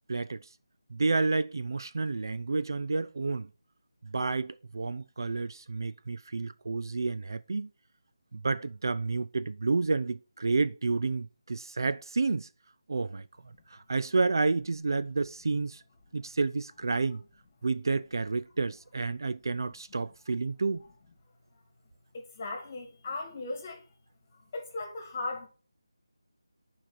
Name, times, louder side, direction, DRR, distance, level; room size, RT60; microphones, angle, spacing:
voice 1, 0.1-0.4 0.9-3.5 4.0-7.7 8.3-12.5 12.9-13.2 13.7-15.8 16.1-17.2 17.6-20.8, right 3 dB, 55° right, 0.4 m, -30 dB
voice 2, 22.1-23.8 24.3-25.5, left 2 dB, 30° left, 2.2 m, -37 dB
10.0 x 5.1 x 4.2 m
figure-of-eight pair, 160°, 2 cm